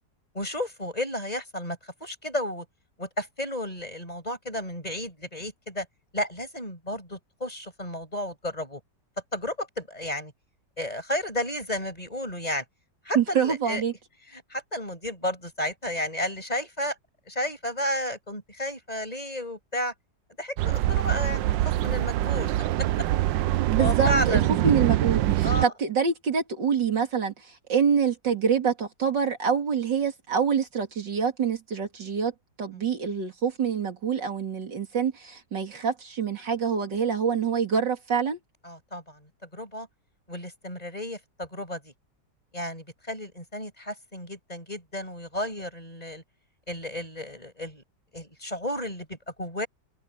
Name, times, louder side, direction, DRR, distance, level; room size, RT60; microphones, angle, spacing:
voice 1, 0.3-2.6 3.0-5.9 6.1-8.8 9.3-10.3 10.8-12.6 13.0-13.8 14.3-16.9 17.3-19.9 20.4-22.9 23.5-24.5 25.4-25.7 32.7-32.8 38.6-39.9 40.3-41.9 42.5-46.2 46.7-47.8 48.1-49.7, left 1 dB, 20° left, 6.7 m, -32 dB
voice 2, 13.1-13.9 23.7-27.3 27.7-32.3 32.6-38.4, right 6 dB, 75° right, 3.2 m, -26 dB
sound 1, 20.6-25.7, right 14 dB, 90° right, 1.3 m, -24 dB
omnidirectional pair, 2.0 m